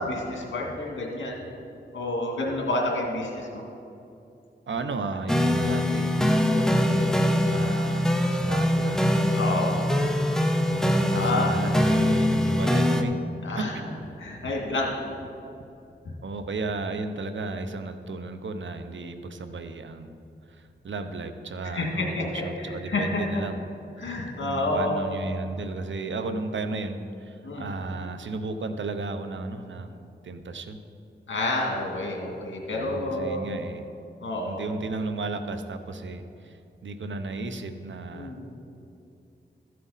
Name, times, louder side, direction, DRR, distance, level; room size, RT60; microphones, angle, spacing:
voice 1, 0.0-1.5 1.9-3.6 9.3-9.8 11.1-11.5 13.4-13.7 14.2-15.0 21.6-23.2 24.0-24.9 27.4-27.7 31.3-33.4 34.2-34.6 38.1-38.5, left 2 dB, 85° left, -1 dB, 2.1 m, -29 dB
voice 2, 4.7-9.2 10.7-13.2 13.6-13.8 16.2-20.2 20.5-23.6 24.0-24.1 24.4-30.8 32.7-33.8 34.4-36.6 36.8-38.4, right 3 dB, 75° right, 8 dB, 0.8 m, -34 dB
sound 1, 5.3-13.0, left 1 dB, 5° left, 0.8 m, -23 dB
14.0 x 7.6 x 4.1 m, 2.6 s
wide cardioid pair, 70°, 19 cm